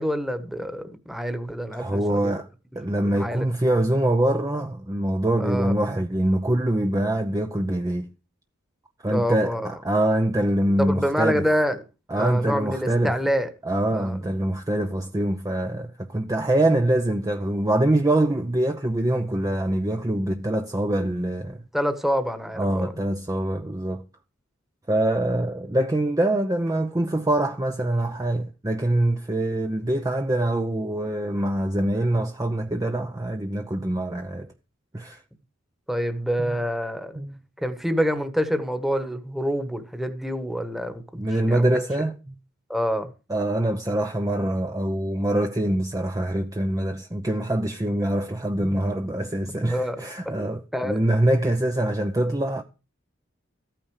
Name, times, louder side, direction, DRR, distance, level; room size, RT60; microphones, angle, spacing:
voice 1, 0.0-2.4 3.0-3.4 5.4-5.7 9.1-9.7 10.8-11.8 12.1-13.5 13.9-14.2 21.7-22.9 35.9-37.2 37.6-41.2 41.5-41.7 42.7-43.1 49.6-50.0 50.7-51.0, equal, ahead, 1.3 m, -26 dB
voice 2, 1.7-2.5 2.8-8.1 9.0-11.4 12.1-13.1 13.7-21.6 22.6-24.0 24.9-34.5 34.9-35.2 36.4-36.6 37.2-37.4 41.2-42.4 43.3-52.6, right 1 dB, 15° right, 0.7 m, -24 dB
14.0 x 9.1 x 4.9 m
head